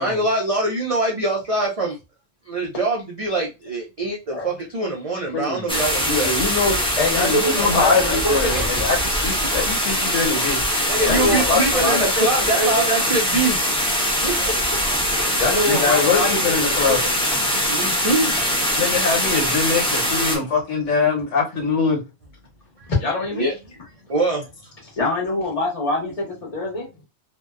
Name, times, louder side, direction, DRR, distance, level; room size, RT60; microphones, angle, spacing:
voice 1, 0.0-2.0 2.5-6.3 10.8-13.6 14.2-14.5 15.2-15.3 17.7-18.3 23.3-23.5 24.1-24.4 24.8-24.9, right 2 dB, 70° right, 0.3 m, -23 dB
voice 2, 5.3-5.7 6.1-6.8 7.1-10.6 11.0-12.1 15.6-17.0 18.8-22.0, left 4 dB, 80° left, 1.3 m, -23 dB
sound 1, 5.7-20.4, equal, 5° left, 0.5 m, -22 dB
voice 3, 7.0-8.6 11.0-12.0 12.5-12.9 15.4-16.4 16.8-17.1 23.0-23.5 25.0-26.9, left 2 dB, 35° left, 1.0 m, -24 dB
2.6 x 2.1 x 2.3 m
omnidirectional pair, 1.2 m